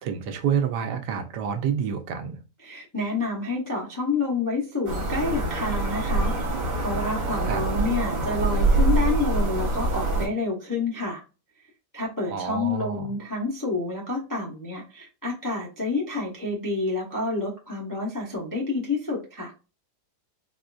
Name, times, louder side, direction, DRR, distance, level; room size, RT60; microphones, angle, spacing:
voice 1, 0.0-2.4 7.4-7.6 12.3-13.1, right 7 dB, 85° right, 1.2 m, -28 dB
voice 2, 2.6-6.3 6.8-11.2 11.9-19.5, left 3 dB, 25° left, 0.4 m, -28 dB
sound 1, 4.9-10.3, right 2 dB, 55° right, 1.4 m, -25 dB
4.2 x 2.4 x 2.3 m
omnidirectional pair, 1.7 m